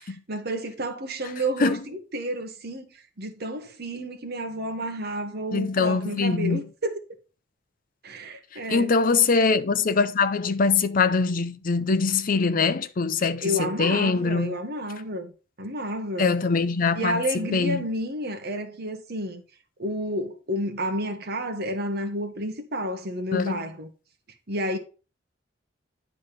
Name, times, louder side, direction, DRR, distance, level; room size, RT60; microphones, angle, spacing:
voice 1, 0.3-2.9 3.2-7.0 8.0-8.9 13.4-15.3 15.6-16.3 16.9-19.4 19.8-23.9 24.5-24.8, equal, 60° right, 1.4 m, -30 dB
voice 2, 5.5-6.6 8.7-14.6 16.2-17.2 17.5-17.8 23.3-23.6, left 4 dB, 50° left, 0.6 m, -23 dB
10.0 x 4.0 x 5.1 m
head